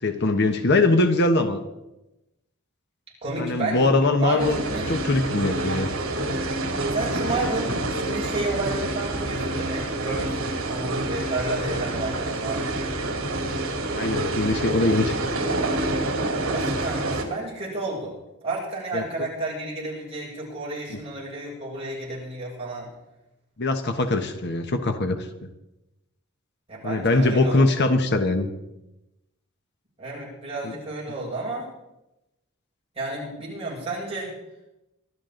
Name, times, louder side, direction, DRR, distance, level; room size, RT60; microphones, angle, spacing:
voice 1, 0.0-1.6 3.4-4.6 4.9-5.9 13.9-15.2 18.9-19.0 23.6-25.3 26.8-28.5 30.6-30.7, left 2 dB, 50° left, 7 dB, 1.2 m, -22 dB
voice 2, 3.2-4.9 6.8-12.7 16.4-18.2 18.4-22.9 26.7-27.6 30.0-31.7 33.0-34.3, right 2 dB, 30° right, -5 dB, 7.0 m, -31 dB
sound 1, 4.4-17.2, right 2 dB, 75° right, 2.8 m, -27 dB
24.0 x 12.5 x 3.9 m, 0.93 s
head